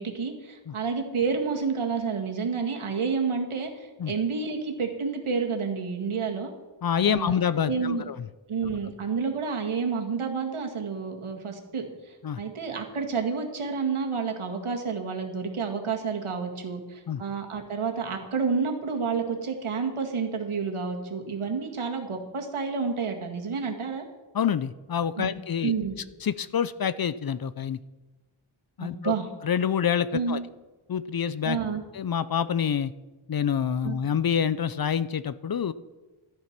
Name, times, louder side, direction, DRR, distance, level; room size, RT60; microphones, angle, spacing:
voice 1, 0.0-6.5 7.1-7.4 7.7-8.0 8.5-24.0 25.2-25.3 25.6-25.9 28.8-29.3 30.1-30.4 31.4-31.8 33.8-34.0, right 5 dB, 75° right, 2 dB, 2.0 m, -29 dB
voice 2, 6.8-8.2 12.2-12.4 17.1-17.2 24.3-25.7 26.2-27.8 28.8-29.2 29.4-30.4 30.9-31.6 31.9-32.9 33.3-35.7, left 8 dB, 50° left, 16 dB, 0.5 m, -27 dB
13.0 x 9.2 x 5.9 m, 1.2 s
wide cardioid pair, 85°, 50 cm